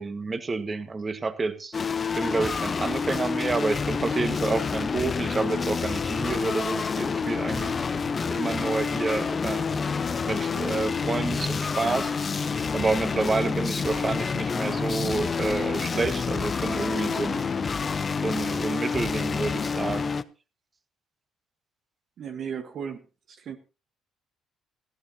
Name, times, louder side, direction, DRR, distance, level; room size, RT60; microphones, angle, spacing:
voice 1, 0.0-1.8 2.1-7.8 8.3-9.7 10.2-12.1 12.7-17.5 18.2-20.1, right 3 dB, 35° right, 10 dB, 1.7 m, -29 dB
sound 1, 1.7-20.2, left 5 dB, 40° left, 0.8 m, -28 dB
sound 2, 6.1-19.9, left 9 dB, 70° left, 1.5 m, -45 dB
voice 2, 22.2-23.6, right 7 dB, 60° right, 6 dB, 1.3 m, -36 dB
18.5 x 14.0 x 2.9 m, 0.33 s
hypercardioid pair, 55°, 0 cm